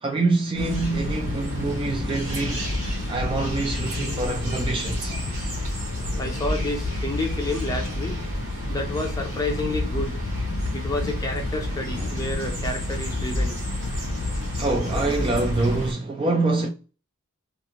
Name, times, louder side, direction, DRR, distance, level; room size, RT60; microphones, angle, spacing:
voice 1, 0.0-2.7 3.1-5.2 14.6-16.7, right 3 dB, 25° right, 0.3 m, -25 dB
sound 1, 0.5-15.9, left 2 dB, 60° left, 0.4 m, -30 dB
sound 2, 0.6-15.9, equal, 70° right, 1.3 m, -35 dB
voice 2, 2.2-2.7 5.1-5.6 6.2-8.2 8.7-10.2 10.7-13.6, left 2 dB, 15° left, 0.6 m, -30 dB
2.5 x 2.2 x 2.8 m
head